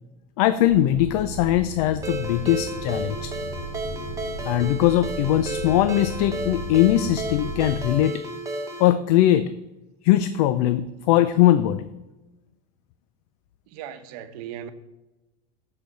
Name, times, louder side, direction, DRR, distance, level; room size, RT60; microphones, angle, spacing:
voice 1, 0.4-3.3 4.4-8.2 8.8-9.5 10.0-11.9, left 13 dB, 65° left, 0.5 m, -20 dB
sound 1, 0.7-7.9, equal, 45° left, 1.7 m, -36 dB
Ringtone, 2.0-8.9, right 2 dB, 15° right, 0.9 m, -33 dB
voice 2, 13.7-14.7, right 10 dB, 70° right, 0.9 m, -37 dB
13.0 x 5.0 x 4.1 m
supercardioid pair, 150°, 20 cm